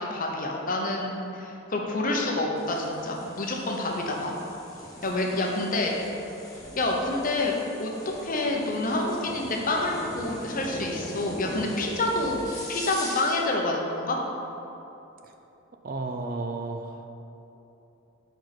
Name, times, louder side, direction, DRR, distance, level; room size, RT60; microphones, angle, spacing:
voice 1, 0.0-4.3 5.0-5.9 6.8-7.5 7.8-7.9 8.2-12.4 12.7-14.2, left 2 dB, 40° left, 0 dB, 0.8 m, -28 dB
sound 1, 2.6-13.5, equal, 15° left, 1.2 m, -41 dB
voice 2, 15.8-17.1, right 3 dB, 40° right, 5 dB, 0.3 m, -33 dB
5.0 x 4.5 x 5.8 m, 3.0 s
head